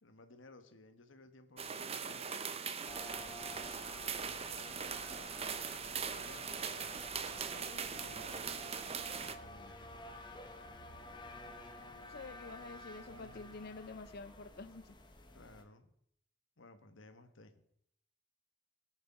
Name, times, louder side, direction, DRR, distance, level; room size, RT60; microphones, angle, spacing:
voice 1, 0.0-2.3 2.9-3.5 3.9-6.9 7.5-10.0 13.1-13.6 15.3-15.9 16.6-17.6, left 2 dB, 85° left, 8 dB, 1.3 m, -59 dB
sound 1, 1.6-9.3, right 6 dB, 30° right, 0.8 m, -41 dB
sound 2, 2.9-15.6, left 1 dB, 25° left, 1.3 m, -51 dB
voice 2, 12.0-14.9, left 3 dB, 55° left, 12 dB, 0.6 m, -48 dB
18.5 x 6.7 x 5.8 m, 0.71 s
head